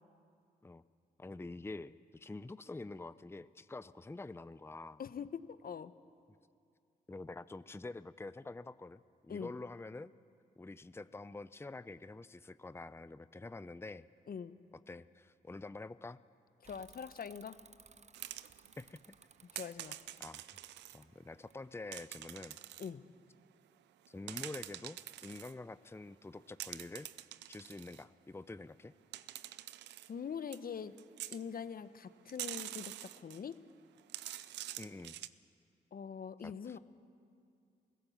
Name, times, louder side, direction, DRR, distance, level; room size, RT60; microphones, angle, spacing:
voice 1, 1.2-5.0 7.1-10.1 10.6-14.1 14.9-16.2 18.8-19.0 20.2-20.4 20.9-22.6 24.1-27.1 27.5-28.9 34.8-35.2 36.4-36.8, left 2 dB, 15° left, 14 dB, 0.6 m, -47 dB
voice 2, 5.0-5.9 9.3-9.5 14.3-14.6 16.6-17.6 19.5-20.0 22.8-23.0 30.1-30.9 31.3-33.6 35.9-36.8, left 7 dB, 55° left, 13 dB, 1.0 m, -43 dB
Bicycle / Mechanisms, 16.6-22.1, right 6 dB, 40° right, 0.7 m, -61 dB
sound 1, 18.1-18.8 19.6-21.0 21.9-22.9 24.0-25.5 26.6-28.0 29.1-30.1 30.5-30.6 31.0-31.4 32.3-33.5 34.0-35.3, right 14 dB, 90° right, 0.6 m, -46 dB
26.5 x 16.5 x 7.2 m, 2.4 s
supercardioid pair, 50°, 18 cm